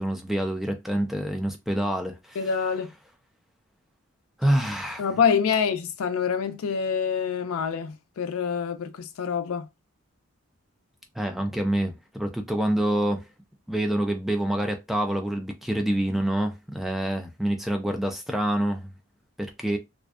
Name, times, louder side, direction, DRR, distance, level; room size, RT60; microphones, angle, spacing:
voice 1, 0.0-2.4 4.4-5.0 11.2-13.3 13.7-18.9 19.4-19.8, right 1 dB, ahead, 0.3 m, -27 dB
voice 2, 2.4-2.9 5.0-9.7, left 6 dB, 70° left, 0.4 m, -26 dB
2.5 x 2.1 x 2.3 m
head